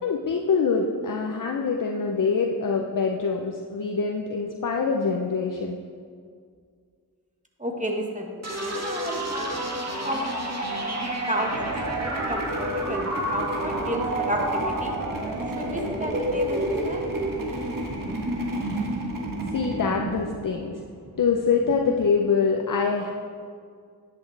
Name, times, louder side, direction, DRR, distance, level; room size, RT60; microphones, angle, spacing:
voice 1, 0.0-5.8 19.2-20.8 21.2-23.1, left 5 dB, 55° left, 2 dB, 0.7 m, -25 dB
voice 2, 7.6-10.4 11.3-15.0 15.6-17.1, equal, 20° right, 1 dB, 1.6 m, -32 dB
sound 1, 8.4-22.0, right 1 dB, 45° right, 1.9 m, -30 dB
sound 2, 11.4-20.8, right 2 dB, 60° right, 1.4 m, -36 dB
10.0 x 8.8 x 3.4 m, 2.1 s
cardioid pair, 40°, 37 cm